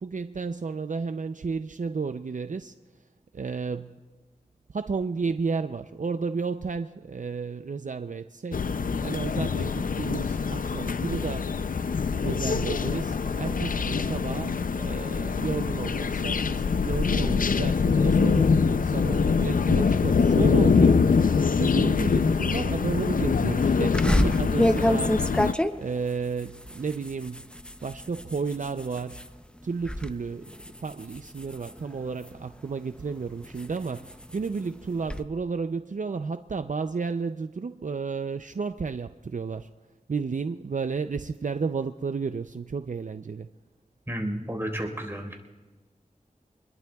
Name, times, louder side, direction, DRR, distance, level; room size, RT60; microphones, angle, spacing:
voice 1, 0.0-2.7 3.3-4.0 4.7-8.7 9.0-11.5 12.2-25.2 25.8-27.5 27.8-29.2 29.6-30.5 30.8-39.7 40.1-43.5, right 5 dB, 65° right, 9 dB, 0.5 m, -32 dB
sound 1, 8.5-25.5, left 5 dB, 80° left, 0.5 m, -24 dB
sound 2, 23.9-29.3 29.7-30.1 30.5-32.5 33.0-35.2, equal, 5° left, 0.7 m, -28 dB
voice 2, 44.1-45.3, equal, 15° right, 1 dB, 4.2 m, -32 dB
27.5 x 21.0 x 2.3 m, 1.3 s
wide cardioid pair, 50°, 14 cm